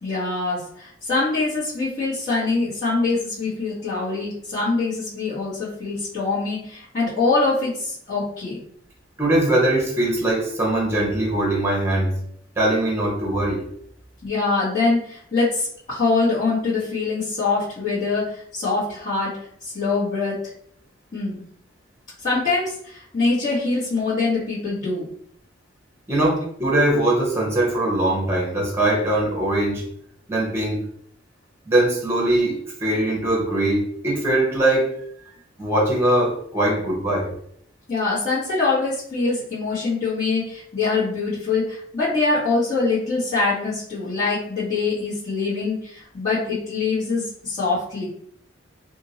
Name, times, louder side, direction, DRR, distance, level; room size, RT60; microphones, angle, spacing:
voice 1, 0.0-8.6 14.2-19.3 19.6-20.4 21.1-21.4 22.2-25.1 37.9-48.1, left 3 dB, 40° left, -14 dB, 1.5 m, -24 dB
voice 2, 9.2-12.1 12.6-13.6 26.1-29.8 30.3-30.8 31.7-34.9 35.6-37.3, right 1 dB, 15° right, -2 dB, 0.8 m, -21 dB
2.8 x 2.6 x 2.8 m, 0.65 s
head